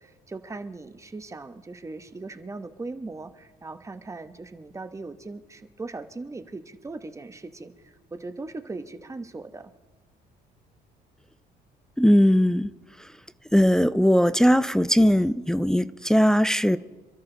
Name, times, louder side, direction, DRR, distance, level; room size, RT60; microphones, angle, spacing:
voice 1, 0.0-9.7, right 3 dB, 15° right, 1.1 m, -39 dB
voice 2, 12.0-12.7 13.0-13.1 13.5-16.8, equal, 5° left, 0.5 m, -19 dB
27.5 x 13.0 x 4.0 m
cardioid pair, 110°, 17 cm